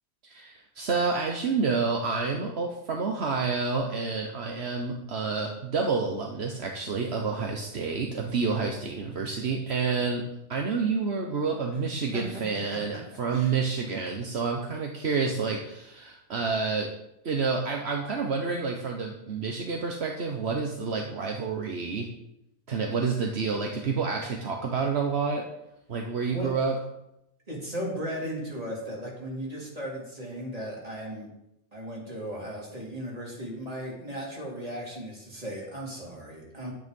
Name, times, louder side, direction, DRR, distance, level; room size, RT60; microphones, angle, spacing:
voice 1, 0.3-10.2 10.5-16.9 17.2-22.1 22.7-25.5 25.9-26.7, right 4 dB, 70° right, 1 dB, 1.4 m, -29 dB
voice 2, 27.5-31.3 31.7-36.7, equal, 35° right, -4 dB, 3.8 m, -36 dB
10.5 x 9.5 x 5.4 m, 0.84 s
omnidirectional pair, 1.1 m